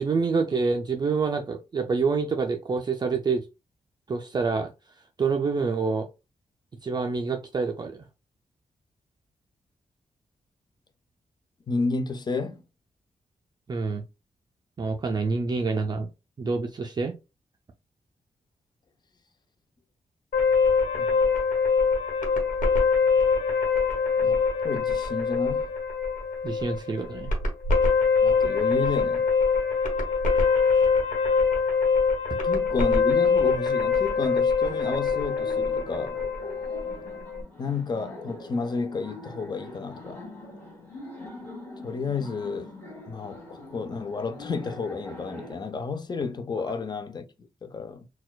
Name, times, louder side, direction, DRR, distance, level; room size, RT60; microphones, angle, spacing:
voice 1, 0.0-3.4 4.1-4.7 5.2-6.1 6.8-8.1 13.7-14.0 14.8-16.1 16.4-17.1 26.4-27.3 32.3-32.4, right 4 dB, 35° right, 0.3 m, -27 dB
voice 2, 11.7-12.6 20.9-21.2 24.2-25.7 28.2-29.3 32.4-36.2 37.6-40.2 41.8-42.7 43.1-47.3 47.6-48.1, left 4 dB, 30° left, 0.4 m, -31 dB
sound 1, 20.3-37.4, left 5 dB, 85° left, 1.2 m, -24 dB
Laughter, 34.6-45.5, left 1 dB, 15° left, 1.5 m, -43 dB
4.1 x 2.3 x 2.2 m
wide cardioid pair, 145°, 13 cm